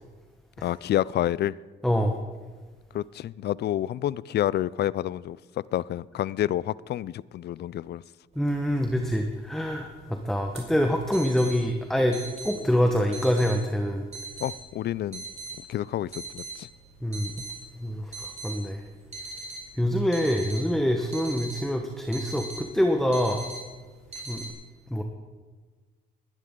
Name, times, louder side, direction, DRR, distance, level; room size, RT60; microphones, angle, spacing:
voice 1, 0.6-1.5 2.9-5.4 5.7-8.0 14.4-15.2 15.7-16.7, left 12 dB, 55° left, 21 dB, 0.4 m, -28 dB
voice 2, 1.8-2.2 8.4-12.2 12.4-14.1 17.0-17.3 17.8-18.8 19.8-23.5 24.3-24.4 24.9-25.0, equal, ahead, 4 dB, 1.2 m, -25 dB
sound 1, 8.4-24.5, right 3 dB, 35° right, 4.6 m, -42 dB
20.5 x 11.0 x 3.8 m, 1.4 s
cardioid pair, 90°, 20 cm